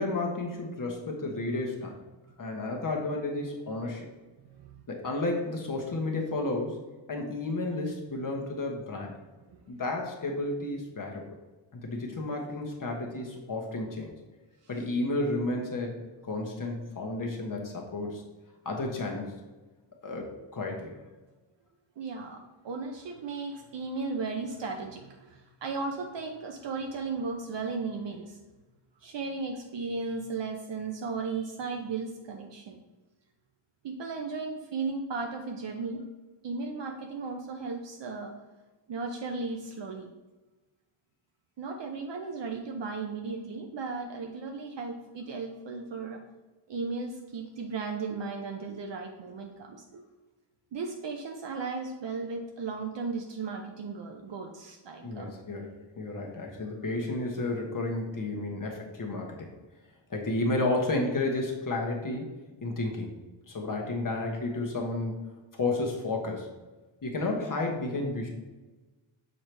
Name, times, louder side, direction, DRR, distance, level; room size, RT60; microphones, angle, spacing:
voice 1, 0.0-2.0 2.4-4.1 4.9-6.8 7.1-9.1 9.7-11.2 11.7-14.1 14.7-16.0 16.3-18.2 18.6-19.4 20.0-20.9 55.0-59.5 60.1-62.3 62.6-63.1 63.5-65.1 65.5-66.5 67.0-68.3, left 2 dB, 40° left, 1 dB, 1.1 m, -32 dB
voice 2, 22.0-28.4 29.0-32.8 33.8-36.0 36.4-38.3 38.9-40.1 41.6-46.2 46.7-50.0 50.7-55.3, right 4 dB, 60° right, 2 dB, 0.6 m, -36 dB
6.5 x 4.5 x 3.3 m, 1.2 s
wide cardioid pair, 150°, 49 cm